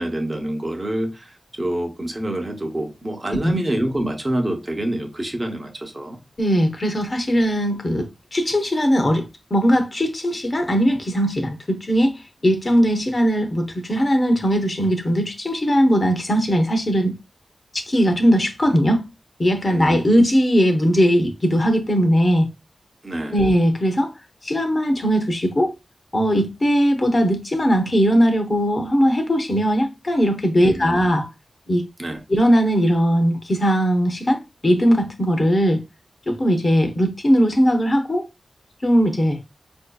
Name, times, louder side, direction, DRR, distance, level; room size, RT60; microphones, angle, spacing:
voice 1, 0.0-6.2 19.7-20.0 23.0-23.4 30.6-31.0 32.0-32.2, right 1 dB, 30° right, 0.8 m, -27 dB
voice 2, 6.4-9.3 9.5-17.2 17.7-19.0 19.4-22.5 23.3-24.1 24.4-25.7 26.1-31.3 31.7-31.9 32.3-35.8 36.3-38.3 38.8-39.4, equal, 35° left, 0.8 m, -19 dB
4.7 x 2.7 x 2.3 m
wide cardioid pair, 85°, 0 cm